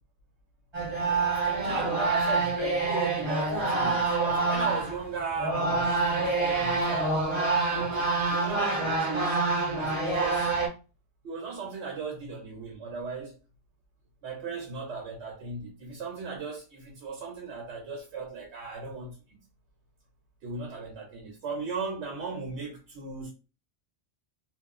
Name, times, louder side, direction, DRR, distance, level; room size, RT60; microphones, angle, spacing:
sound 1, 0.7-5.0 5.4-10.7, right 3 dB, 30° right, 0.7 m, -27 dB
voice 1, 1.4-7.3 7.8-9.4 9.7-10.5 11.2-13.3 14.2-19.4 20.4-23.3, right 4 dB, 80° right, 1.0 m, -37 dB
2.4 x 2.0 x 3.6 m
omnidirectional pair, 1.1 m